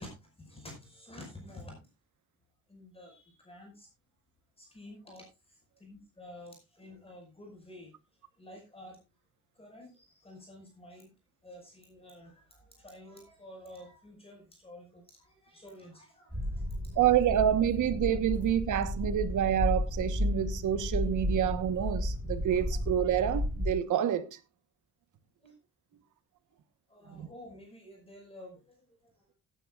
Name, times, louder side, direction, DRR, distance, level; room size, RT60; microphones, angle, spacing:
voice 1, 0.0-1.9 2.7-3.9 4.6-7.9 8.4-9.0 9.5-11.1 11.4-17.1 22.7-22.8 25.4-25.5 26.9-29.1, left 1 dB, 20° left, 5.4 m, -51 dB
sound 1, 16.3-23.7, left 1 dB, 5° right, 7.9 m, -33 dB
voice 2, 17.0-24.2 27.1-27.3, right 10 dB, 80° right, 1.2 m, -28 dB
17.5 x 9.9 x 2.4 m
cardioid pair, 125°, 30 cm